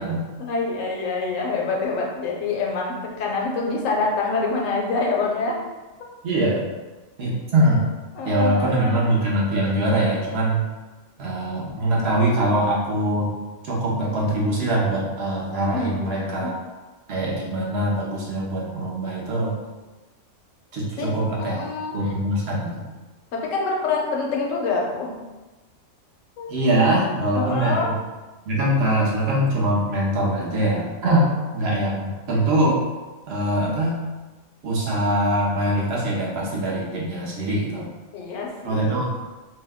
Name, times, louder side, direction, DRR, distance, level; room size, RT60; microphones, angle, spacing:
voice 1, 0.4-5.6 8.2-9.0 15.7-16.5 21.0-22.1 23.3-25.1 26.4-26.5 27.3-27.9 38.1-39.0, left 3 dB, 70° left, -1 dB, 0.9 m, -26 dB
voice 2, 6.2-6.6 7.2-7.9 8.2-10.6 11.2-13.3 13.6-16.5 17.1-19.5 20.7-21.6 21.9-22.9 26.5-27.9 28.5-32.8 33.3-34.0 34.6-37.9 38.6-39.1, right 1 dB, 55° right, -4 dB, 0.8 m, -23 dB
2.7 x 2.2 x 3.4 m, 1.2 s
omnidirectional pair, 1.5 m